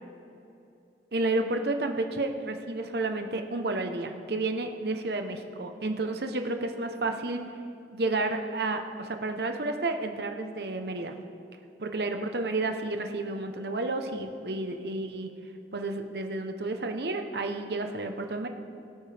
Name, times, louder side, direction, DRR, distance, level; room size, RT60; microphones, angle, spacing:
voice 1, 1.1-7.4 7.9-11.1 11.8-15.3 15.7-18.5, right 2 dB, 65° right, 5 dB, 0.9 m, -31 dB
21.5 x 9.0 x 3.5 m, 2.7 s
head